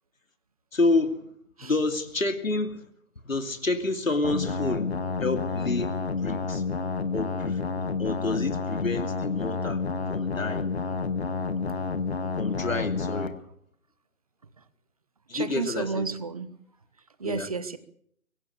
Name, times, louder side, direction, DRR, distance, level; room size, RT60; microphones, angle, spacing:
voice 1, 0.7-1.3 1.6-2.9 3.2-4.9 5.2-6.6 7.1-9.8 10.1-10.7 12.4-13.4 15.3-16.1 17.2-17.5, left 2 dB, 70° left, 6 dB, 2.7 m, -29 dB
sound 1, 4.2-13.3, left 4 dB, 50° left, 2.0 m, -29 dB
voice 2, 15.3-16.5 17.2-17.8, right 4 dB, 25° right, 15 dB, 1.2 m, -31 dB
23.5 x 17.0 x 8.3 m, 0.68 s
figure-of-eight pair, 160°, 42 cm